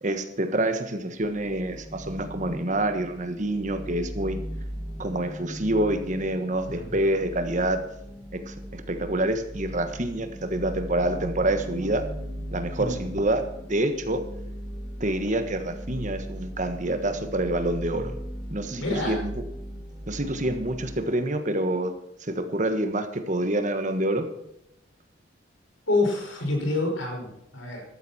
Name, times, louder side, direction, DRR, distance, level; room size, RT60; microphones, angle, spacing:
voice 1, 0.0-4.4 5.0-7.8 8.3-12.0 12.5-14.2 15.0-18.2 18.5-19.3 20.1-21.9 22.2-24.3, right 1 dB, 40° right, 7 dB, 1.4 m, -27 dB
sound 1, 1.2-21.0, equal, ahead, 3.1 m, -38 dB
voice 2, 18.8-19.2 25.9-27.8, left 2 dB, 90° left, 1 dB, 5.4 m, -27 dB
13.5 x 13.0 x 4.3 m, 0.79 s
head